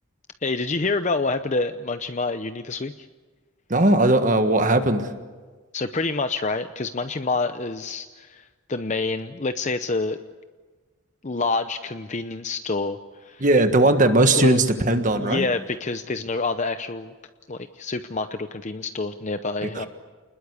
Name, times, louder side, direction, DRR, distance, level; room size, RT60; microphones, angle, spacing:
voice 1, 0.4-3.1 5.7-10.2 11.2-13.4 14.4-14.6 15.2-17.1 17.5-19.9, left 3 dB, 35° left, 9 dB, 0.7 m, -27 dB
voice 2, 3.7-5.1 13.4-15.5 19.7-19.9, right 2 dB, 40° right, 8 dB, 1.6 m, -18 dB
28.5 x 20.5 x 8.3 m, 1.4 s
head